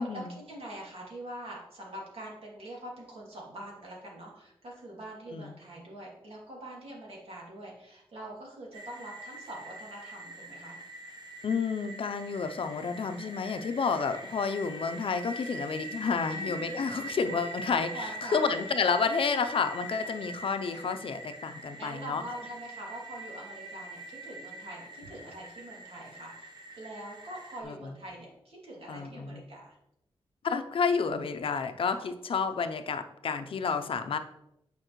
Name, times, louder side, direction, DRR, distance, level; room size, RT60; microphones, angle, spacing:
voice 1, 0.0-10.8 16.3-16.5 17.9-18.4 21.8-29.8 31.9-32.0, right 1 dB, 70° right, -4 dB, 2.6 m, -44 dB
sound 1, 8.7-27.6, right 1 dB, 45° right, 1.0 m, -43 dB
voice 2, 11.4-22.2 27.6-27.7 28.9-29.4 30.4-34.2, left 5 dB, 60° left, 8 dB, 0.6 m, -30 dB
8.9 x 5.2 x 3.1 m, 0.83 s
wide cardioid pair, 115°, 10 cm